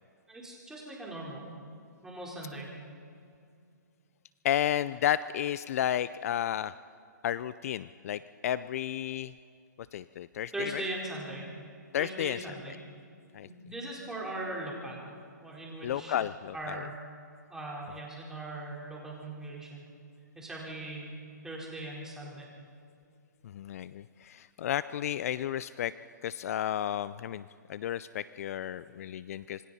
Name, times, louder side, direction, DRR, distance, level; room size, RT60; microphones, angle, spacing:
voice 1, 0.3-1.4 2.0-2.7 10.5-11.5 12.0-12.8 13.4-15.1 15.4-16.2 16.5-16.9 17.5-19.9 20.3-21.1 21.4-22.5, right 1 dB, 5° right, -4 dB, 4.1 m, -39 dB
voice 2, 4.4-6.7 7.2-9.3 9.9-10.8 11.9-12.4 13.3-13.5 15.8-16.8 23.4-25.9 26.2-29.6, left 11 dB, 50° left, 16 dB, 0.4 m, -32 dB
26.5 x 23.0 x 4.2 m, 2.4 s
hypercardioid pair, 140°, 10 cm